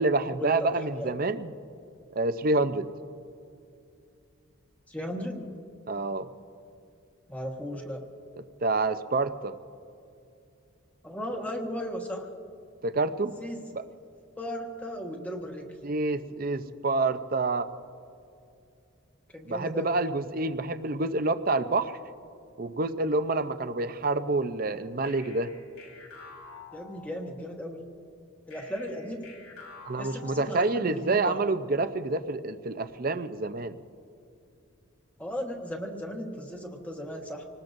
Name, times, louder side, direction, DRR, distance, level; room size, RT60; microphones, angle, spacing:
voice 1, 0.0-1.5 2.2-2.9 5.9-6.3 8.4-9.5 12.8-13.3 13.7-13.8 15.8-17.7 19.5-22.0 22.6-25.5 29.8-33.8, right 3 dB, 45° right, 10 dB, 0.6 m, -28 dB
voice 2, 4.9-5.5 7.3-8.1 11.0-12.3 13.4-13.6 14.4-15.7 19.3-19.9 26.7-27.8 28.5-29.3 30.0-31.4 35.2-37.4, equal, 5° left, 1 dB, 1.3 m, -36 dB
sound 1, 25.0-27.6 28.5-31.0, left 4 dB, 75° left, 2.9 m, -49 dB
26.0 x 19.5 x 2.6 m, 2.5 s
head